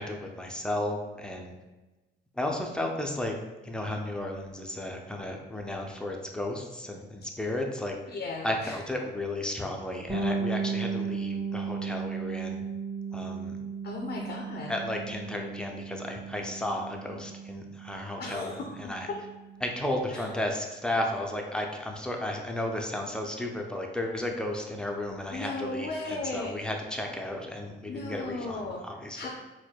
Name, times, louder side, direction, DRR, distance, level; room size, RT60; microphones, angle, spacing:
voice 1, 0.0-1.6 2.3-3.4 3.6-8.2 8.4-12.6 13.1-13.6 14.7-19.1 19.6-29.3, left 1 dB, 5° left, 1 dB, 0.4 m, -34 dB
voice 2, 8.1-8.8 13.8-14.7 18.2-18.7 20.1-20.3 25.3-26.7 27.9-28.8 29.1-29.3, left 3 dB, 55° left, 0 dB, 0.5 m, -36 dB
Bass guitar, 10.1-19.7, right 5 dB, 20° right, 1.2 m, -35 dB
4.2 x 2.1 x 2.3 m, 1.1 s
cardioid pair, 90°, 20 cm